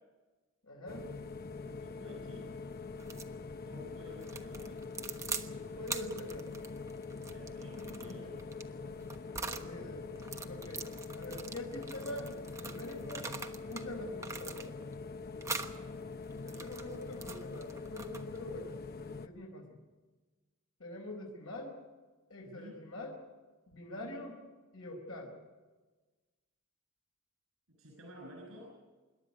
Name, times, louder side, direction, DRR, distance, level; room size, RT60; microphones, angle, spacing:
voice 1, 0.6-1.1 5.5-6.6 7.8-8.5 9.4-10.0 10.5-10.9 11.2-13.3 13.6-14.7 16.4-19.6 20.8-21.8 22.3-23.1 23.7-24.4 24.7-25.3, left 1 dB, 90° left, -1 dB, 4.6 m, -45 dB
sound 1, 0.9-19.3, left 4 dB, 45° left, 0.8 m, -44 dB
voice 2, 1.6-2.5 3.6-4.8 7.3-8.3 22.5-22.8 23.9-24.2 27.8-28.7, equal, 75° right, -1 dB, 5.8 m, -52 dB
sound 2, 3.0-3.3 4.2-5.5 5.8-9.7 10.2-13.9 14.2-14.9 15.4-15.8 16.3-18.4, right 4 dB, 15° right, 1.2 m, -43 dB
27.0 x 11.5 x 9.6 m, 1.3 s
head